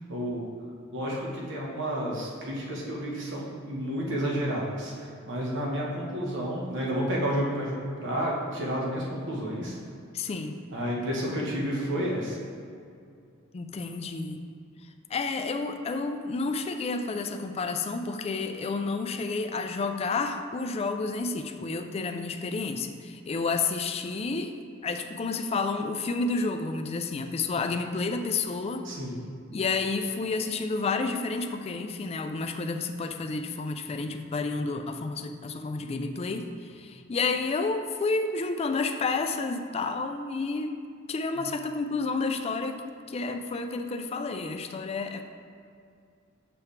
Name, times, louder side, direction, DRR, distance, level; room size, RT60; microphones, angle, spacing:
voice 1, 0.1-0.4 0.9-9.8 10.7-12.4 28.8-29.2, equal, 60° right, -3 dB, 1.2 m, -31 dB
voice 2, 10.1-10.6 13.5-14.5 15.1-24.6 24.8-28.9 29.5-40.8 41.1-45.2, left 3 dB, 30° left, 6 dB, 0.3 m, -30 dB
6.9 x 4.8 x 3.2 m, 2.3 s
head